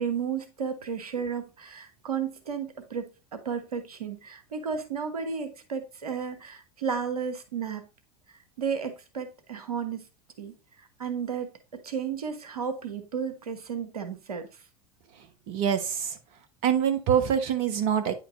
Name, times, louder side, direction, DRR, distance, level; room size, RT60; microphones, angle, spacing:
voice 1, 0.0-7.8 8.3-10.0 10.4-11.5 11.8-14.5, right 6 dB, 85° right, 1.2 m, -33 dB
voice 2, 15.5-16.1 16.6-18.2, right 8 dB, 55° right, 1.1 m, -25 dB
9.7 x 5.1 x 2.5 m
hypercardioid pair, 80°, 19 cm